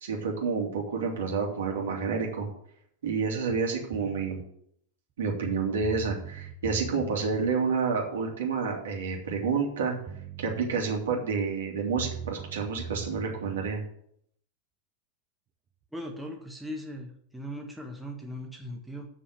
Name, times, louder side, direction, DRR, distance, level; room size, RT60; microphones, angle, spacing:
voice 1, 0.0-2.5 3.0-4.4 5.2-10.0 10.4-13.8, right 5 dB, 60° right, 0 dB, 2.7 m, -29 dB
sound 1, 3.9-4.4 5.5-5.6 5.8-7.5 9.7-9.8 10.1-10.7 12.0-13.7, right 8 dB, 30° right, 0.7 m, -40 dB
voice 2, 15.9-19.1, equal, ahead, 0 dB, 1.5 m, -39 dB
7.8 x 6.3 x 8.0 m, 0.68 s
figure-of-eight pair, 90°, 0 cm